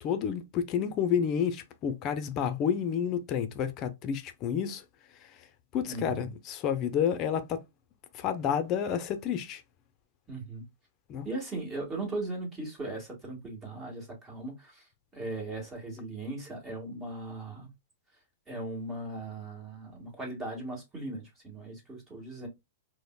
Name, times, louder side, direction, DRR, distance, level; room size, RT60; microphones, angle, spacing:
voice 1, 0.0-4.8 5.3-5.4 5.7-7.6 8.1-9.6 11.1-11.3, left 8 dB, 40° left, 0.5 m, -30 dB
voice 2, 5.9-6.2 10.3-10.6 11.2-14.8 15.1-17.7 18.5-22.5, right 2 dB, 20° right, 1.8 m, -38 dB
5.0 x 2.1 x 2.2 m
hypercardioid pair, 120°, 0 cm